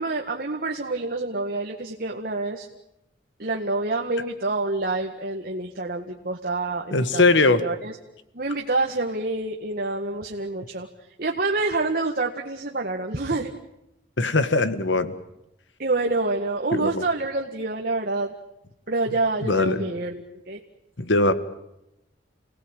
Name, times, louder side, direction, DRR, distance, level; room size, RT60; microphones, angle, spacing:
voice 1, 0.0-2.7 3.4-7.9 8.3-10.9 11.2-13.5 15.8-18.3 18.9-20.6, right 2 dB, 50° right, 2 dB, 1.8 m, -27 dB
voice 2, 6.9-7.6 14.2-15.1 16.7-17.0 19.4-19.8 21.0-21.3, left 2 dB, 75° left, 12 dB, 1.7 m, -20 dB
29.5 x 18.0 x 9.0 m, 0.86 s
head